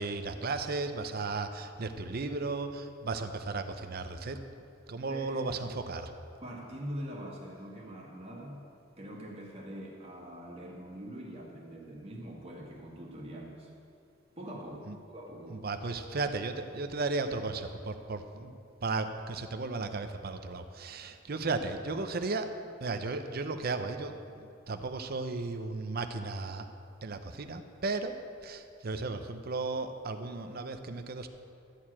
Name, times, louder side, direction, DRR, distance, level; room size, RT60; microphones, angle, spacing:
voice 1, 0.0-4.4 4.9-6.1 14.9-15.0 15.5-22.5 22.8-26.7 27.0-28.1 28.4-31.3, right 3 dB, 50° right, 8 dB, 0.7 m, -35 dB
voice 2, 5.0-5.5 6.4-8.7 9.0-13.7 14.4-15.6, equal, 30° right, -3 dB, 1.9 m, -43 dB
13.0 x 4.7 x 8.6 m, 2.4 s
head